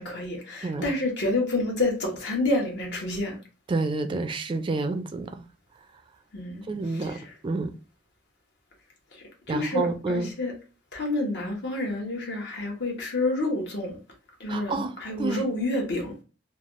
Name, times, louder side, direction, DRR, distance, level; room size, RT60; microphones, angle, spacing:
voice 1, 0.0-3.4 6.3-6.6 9.5-10.5 10.9-13.9 14.4-16.1, left 2 dB, 65° left, 1.0 m, -28 dB
voice 2, 0.6-0.9 3.7-5.4 6.7-7.7 9.5-10.3 14.5-15.5, right 3 dB, 25° right, 0.3 m, -29 dB
3.2 x 2.3 x 2.4 m
head